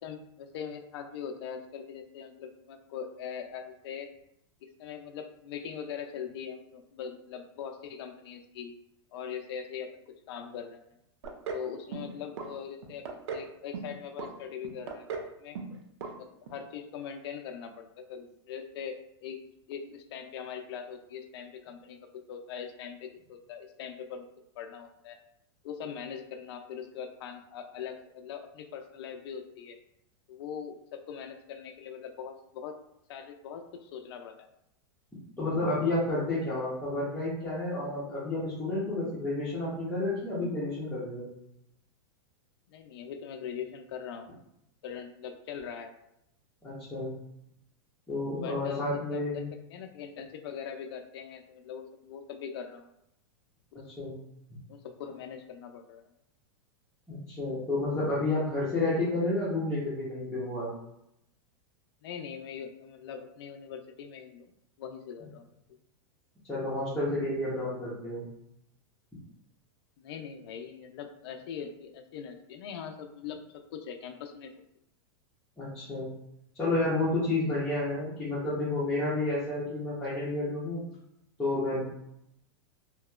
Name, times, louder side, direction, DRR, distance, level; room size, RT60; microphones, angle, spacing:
voice 1, 0.0-4.1 4.6-8.7 9.1-10.8 11.5-15.1 15.4-15.6 16.1-19.4 19.7-22.0 22.3-24.3 24.6-25.2 25.6-29.8 30.3-32.8 33.1-34.5 42.7-44.3 44.8-45.9 48.3-49.4 49.7-52.9 53.8-53.9 54.7-56.0 62.0-64.4 64.8-65.5 70.0-74.5, left 7 dB, 70° left, 4 dB, 0.4 m, -41 dB
sound 1, 11.2-11.7 11.9-12.5 12.8-13.5 13.7-14.3 14.6-15.3 15.5-15.8 16.0-16.1 16.5-16.6, right 5 dB, 85° right, 0.5 m, -37 dB
voice 2, 35.4-41.3 46.6-47.1 48.1-49.5 54.0-54.2 57.1-60.7 66.5-68.2 75.6-76.1 76.5-80.8 81.4-81.8, left 2 dB, 5° left, -11 dB, 0.9 m, -30 dB
2.8 x 2.8 x 2.3 m, 0.78 s
supercardioid pair, 140°, 14 cm